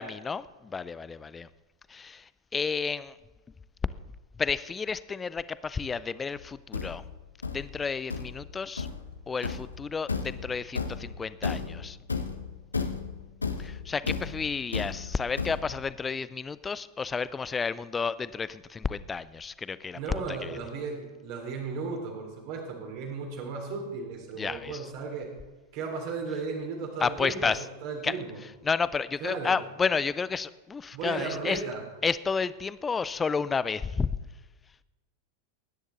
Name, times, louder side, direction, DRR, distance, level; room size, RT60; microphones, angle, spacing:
voice 1, 0.0-1.5 1.9-3.2 4.4-7.0 7.5-8.9 9.3-12.0 13.6-20.6 24.4-24.9 27.0-27.6 28.0-28.1 28.6-31.6 32.0-34.1, left 5 dB, 15° left, 17 dB, 0.4 m, -31 dB
Thump thud, 6.3-15.9, left 5 dB, 75° left, 0.9 m, -34 dB
voice 2, 19.9-25.3 25.7-27.5 27.8-28.4 29.2-29.5 30.9-31.8, right 4 dB, 45° right, 2 dB, 3.1 m, -35 dB
19.0 x 10.0 x 3.9 m, 1.2 s
figure-of-eight pair, 90°, 0 cm